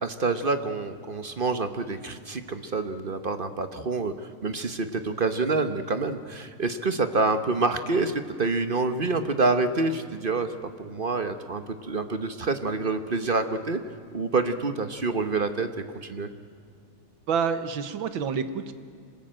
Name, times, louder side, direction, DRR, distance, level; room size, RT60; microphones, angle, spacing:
voice 1, 0.0-10.5 10.8-13.8 14.1-15.7 16.0-16.3, right 3 dB, 40° right, 9 dB, 0.8 m, -27 dB
voice 2, 17.3-18.7, right 6 dB, 65° right, 11 dB, 1.9 m, -28 dB
26.0 x 20.0 x 8.9 m, 2.2 s
omnidirectional pair, 2.4 m